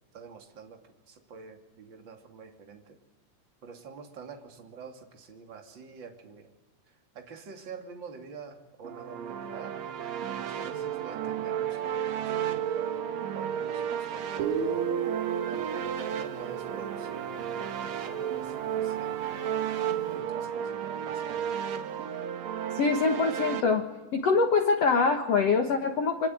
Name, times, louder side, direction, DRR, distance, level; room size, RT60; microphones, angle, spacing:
voice 1, 0.1-3.0 3.6-6.5 7.1-9.8 10.2-14.9 15.4-19.4 20.1-21.5, right 5 dB, 30° right, 4 dB, 2.5 m, -46 dB
sound 1, 8.8-23.6, right 9 dB, 70° right, 1.6 m, -33 dB
Guitar, 14.4-17.9, right 7 dB, 55° right, 5.2 m, -34 dB
voice 2, 22.7-23.9 24.1-26.3, left 4 dB, 80° left, 5 dB, 1.4 m, -24 dB
25.5 x 23.5 x 9.5 m, 1.1 s
omnidirectional pair, 5.3 m